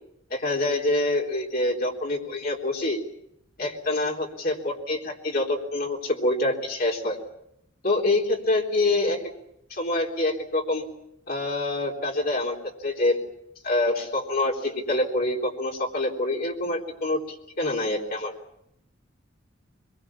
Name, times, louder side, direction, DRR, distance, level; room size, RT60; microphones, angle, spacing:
voice 1, 0.3-3.0 3.6-7.2 7.8-9.2 9.7-10.8 11.3-13.2 13.6-18.3, left 2 dB, 50° left, -1 dB, 3.7 m, -26 dB
25.0 x 22.5 x 7.2 m, 0.77 s
head